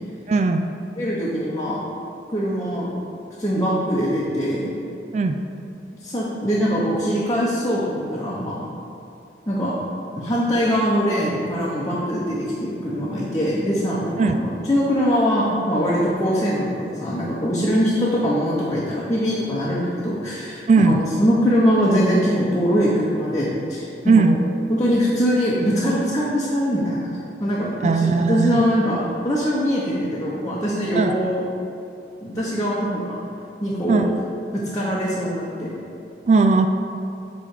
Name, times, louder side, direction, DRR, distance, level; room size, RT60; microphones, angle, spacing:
voice 1, 0.3-0.7 5.1-5.4 14.2-14.4 20.7-21.0 24.0-24.4 27.8-28.6 30.9-31.2 33.9-34.2 36.3-36.7, right 4 dB, 40° right, 7 dB, 0.3 m, -18 dB
voice 2, 1.0-1.8 2.3-2.9 3.4-4.7 6.0-8.6 9.5-9.7 10.1-24.4 24.7-31.4 32.2-33.2 33.6-34.1 34.5-35.7, equal, 20° left, -8 dB, 0.9 m, -22 dB
9.1 x 3.4 x 6.5 m, 2.7 s
head